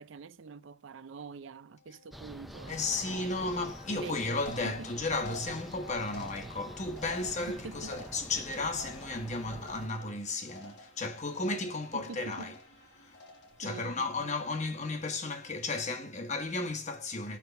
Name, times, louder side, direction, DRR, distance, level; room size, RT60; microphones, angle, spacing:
voice 1, 0.0-3.3 3.9-4.9 7.2-8.0 11.9-12.5 13.6-14.1, right 5 dB, 65° right, 0.5 m, -45 dB
sound 1, 1.4-14.3, left 3 dB, 85° left, 3.5 m, -57 dB
sound 2, 2.1-9.9, equal, ahead, 0.4 m, -47 dB
voice 2, 2.7-12.6 12.9-13.2 13.6-17.4, left 3 dB, 35° left, 1.1 m, -34 dB
sound 3, 4.5-10.2 10.5-11.1 11.4-11.9 12.3-12.8 13.1-13.7, equal, 55° left, 1.4 m, -48 dB
6.0 x 5.5 x 6.9 m
head